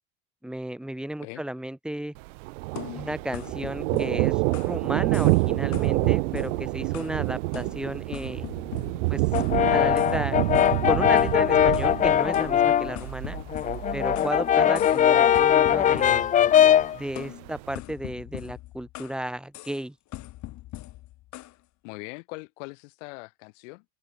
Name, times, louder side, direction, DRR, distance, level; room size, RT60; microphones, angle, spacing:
voice 1, 0.4-2.1 2.9-8.5 9.1-9.2 9.7-10.4 10.9-13.4 13.9-16.3 16.9-19.9, right 1 dB, ahead, 2.8 m, -33 dB
Thunder, 2.2-17.7, right 25 dB, 90° right, 1.2 m, -28 dB
sound 1, 2.8-4.8 5.1-5.5 5.7-7.2 7.5-9.6 10.0-10.2 10.5-12.0 12.3-14.4 14.7-15.1 15.3-16.8 17.2-19.2 19.5-19.8 20.1-21.6, left 17 dB, 50° left, 2.8 m, -41 dB
Brass instrument, 9.3-13.0 13.3-17.0, left 10 dB, 20° left, 0.5 m, -21 dB
voice 2, 14.6-15.0 21.8-23.8, left 29 dB, 80° left, 6.3 m, -41 dB
open air
cardioid pair, 140°, 37 cm